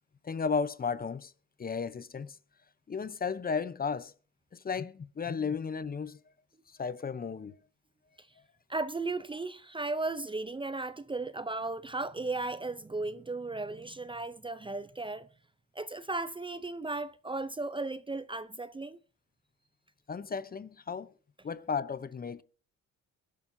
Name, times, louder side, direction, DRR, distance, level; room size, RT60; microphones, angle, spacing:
voice 1, 0.2-1.3 1.6-2.4 2.9-4.1 4.5-6.2 6.8-7.5 20.1-21.1 21.4-22.4, left 5 dB, 30° left, 0.7 m, -34 dB
voice 2, 8.7-15.3 15.8-19.0, right 3 dB, 15° right, 0.5 m, -35 dB
23.0 x 11.5 x 2.7 m
cardioid pair, 90°, 30 cm